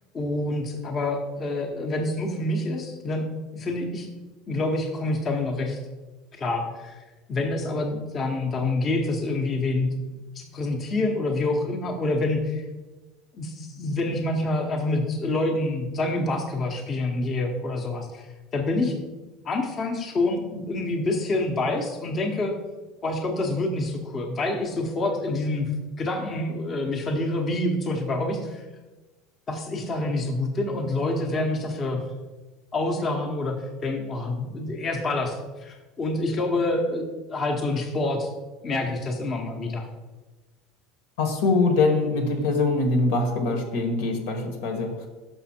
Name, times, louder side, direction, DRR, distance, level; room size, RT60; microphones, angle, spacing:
voice 1, 0.1-3.3 3.5-4.1 4.5-5.8 6.3-7.0 7.3-9.9 10.3-12.6 13.3-19.0 19.4-22.6 23.0-25.7 26.0-28.6 29.5-32.0 32.7-38.3 38.6-39.9, left 2 dB, 25° left, 2 dB, 0.8 m, -27 dB
voice 2, 41.2-44.9, left 3 dB, 80° left, 5 dB, 1.3 m, -23 dB
6.0 x 5.4 x 4.3 m, 1.2 s
supercardioid pair, 140°, 0 cm